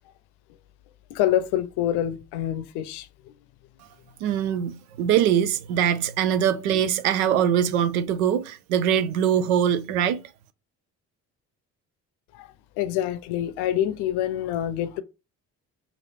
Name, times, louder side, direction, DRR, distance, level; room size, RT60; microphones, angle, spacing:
voice 1, 1.1-3.3 12.3-12.5 12.8-15.0, left 11 dB, 65° left, 0.6 m, -26 dB
voice 2, 4.2-10.2, right 9 dB, 80° right, 0.5 m, -22 dB
3.2 x 2.6 x 4.2 m
hypercardioid pair, 50°, 43 cm